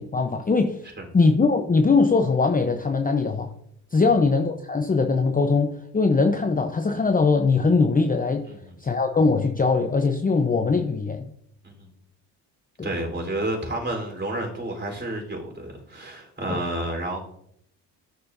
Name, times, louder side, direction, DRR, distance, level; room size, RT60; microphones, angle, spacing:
voice 1, 0.0-0.8 1.1-3.5 3.9-8.5 8.8-11.3 12.8-12.9 16.5-16.6, left 4 dB, 20° left, 5 dB, 0.8 m, -21 dB
voice 2, 8.5-8.8 11.6-11.9 12.8-17.2, right 1 dB, 25° right, 1 dB, 4.0 m, -30 dB
13.5 x 6.7 x 2.7 m, 0.71 s
supercardioid pair, 65°, 43 cm